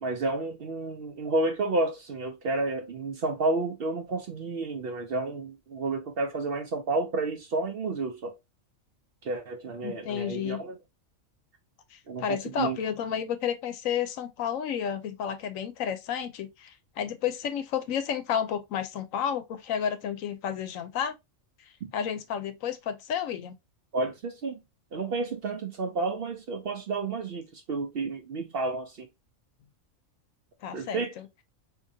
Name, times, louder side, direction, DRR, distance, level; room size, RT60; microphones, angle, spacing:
voice 1, 0.0-8.3 9.2-10.8 12.1-12.8 21.8-21.9 23.9-24.6 24.9-29.1 30.7-31.1, right 3 dB, 60° right, 0.7 m, -31 dB
voice 2, 9.8-10.6 11.9-21.2 21.9-23.5 30.6-31.3, left 8 dB, 80° left, 1.0 m, -31 dB
3.7 x 2.8 x 2.7 m
omnidirectional pair, 1.4 m